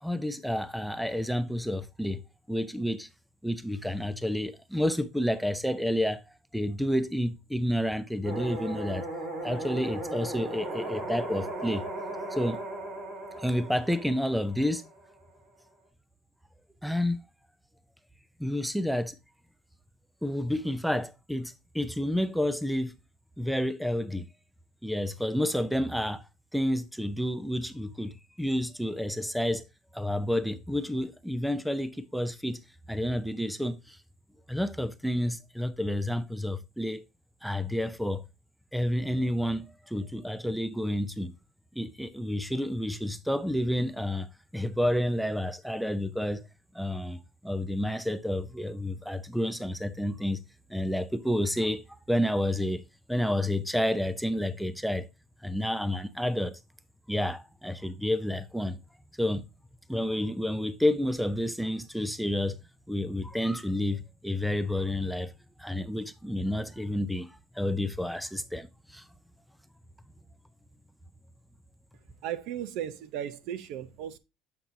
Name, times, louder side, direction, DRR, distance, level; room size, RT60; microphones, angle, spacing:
voice 1, 0.0-2.2 2.5-3.1 3.4-6.2 6.5-9.1 9.4-11.8 12.3-12.6 13.4-14.8 16.8-17.2 18.4-19.1 20.2-23.0 23.4-24.3 24.8-26.2 26.5-29.6 29.9-32.6 32.9-34.0 34.5-37.0 37.4-38.2 38.7-41.3 41.8-44.3 44.5-46.4 46.7-50.4 50.7-52.8 53.1-55.1 55.4-56.6 57.1-58.8 59.2-59.4 59.9-62.6 62.9-65.3 65.6-69.0, left 1 dB, ahead, 0.4 m, -30 dB
sound 1, 8.2-15.2, right 1 dB, 55° right, 3.3 m, -37 dB
voice 2, 72.2-74.2, right 10 dB, 70° right, 0.6 m, -36 dB
7.4 x 5.9 x 2.6 m
cardioid pair, 140°, 0 cm